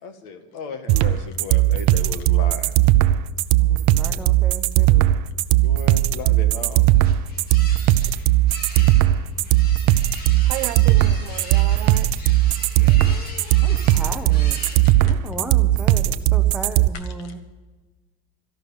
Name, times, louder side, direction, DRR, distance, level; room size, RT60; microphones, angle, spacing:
voice 1, 0.0-2.7 5.5-6.9 12.7-14.2 14.6-15.5 17.2-17.3, left 5 dB, 60° left, 8 dB, 2.0 m, -37 dB
sound 1, 0.9-16.9, right 15 dB, 50° right, 0.6 m, -17 dB
voice 2, 3.6-5.2 13.6-14.6 15.0-17.4, right 1 dB, 5° right, 5 dB, 0.8 m, -36 dB
sound 2, 6.5-15.3, left 2 dB, 30° left, 2.1 m, -40 dB
voice 3, 10.5-12.1, right 16 dB, 80° right, 12 dB, 1.0 m, -32 dB
13.0 x 11.5 x 7.0 m, 1.3 s
cardioid pair, 175°, 32 cm